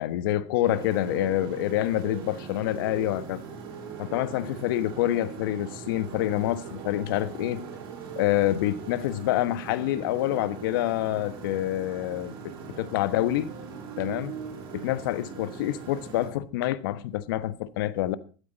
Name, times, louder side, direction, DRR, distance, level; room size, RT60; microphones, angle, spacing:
voice 1, 0.0-3.4 4.0-7.6 8.1-12.3 12.8-13.5 14.0-14.3 14.7-18.2, left 14 dB, 70° left, 1.3 m, -27 dB
Motorcycle, 0.6-16.3, right 6 dB, 70° right, 4.8 m, -40 dB
13.5 x 12.5 x 4.1 m
supercardioid pair, 135°, 12 cm